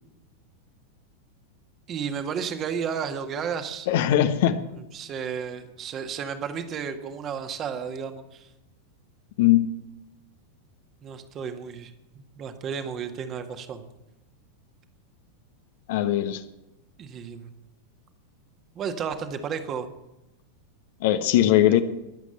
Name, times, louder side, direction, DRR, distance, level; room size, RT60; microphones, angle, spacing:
voice 1, 1.9-3.9 4.7-8.5 11.0-13.9 17.0-17.5 18.8-19.9, right 7 dB, 30° right, 7 dB, 1.8 m, -33 dB
voice 2, 3.9-4.6 9.4-9.7 15.9-16.4 21.0-21.8, left 12 dB, 50° left, 10 dB, 1.2 m, -20 dB
21.5 x 8.2 x 7.8 m, 0.94 s
figure-of-eight pair, 90°, 0 cm